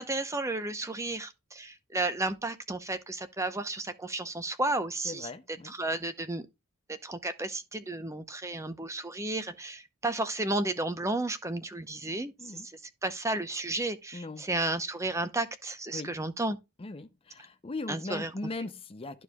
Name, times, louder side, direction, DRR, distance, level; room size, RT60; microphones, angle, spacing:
voice 1, 0.0-6.5 6.9-12.7 13.0-16.6 17.9-18.3, right 2 dB, 15° right, 0.7 m, -33 dB
voice 2, 5.0-5.7 12.4-12.7 14.1-14.5 15.9-16.1 16.8-19.2, left 2 dB, 25° left, 0.5 m, -39 dB
12.5 x 4.7 x 2.3 m
head